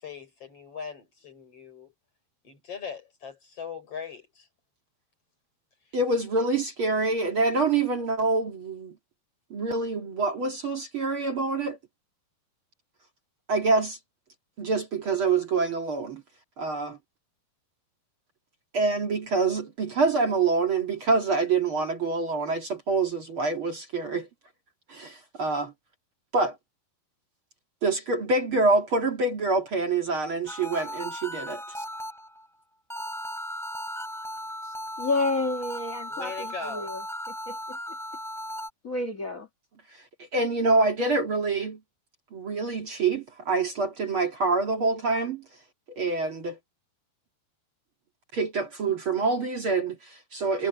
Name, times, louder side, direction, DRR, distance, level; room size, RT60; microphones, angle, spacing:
voice 1, 0.0-1.9 2.4-4.5 36.1-36.9, left 6 dB, 40° left, 5.9 m, -39 dB
voice 2, 5.9-8.9 9.5-11.8 13.5-14.0 14.6-16.2 16.6-17.0 18.7-24.3 24.9-25.7 26.3-26.6 27.8-31.6 40.3-41.8 42.3-45.4 45.9-46.6 48.3-50.7, right 3 dB, 40° right, 2.3 m, -26 dB
sound 1, 30.5-32.5 32.9-38.7, equal, ahead, 2.3 m, -36 dB
voice 3, 35.0-37.0 37.5-37.8 38.8-39.5, left 2 dB, 75° left, 0.7 m, -30 dB
omnidirectional pair, 4.4 m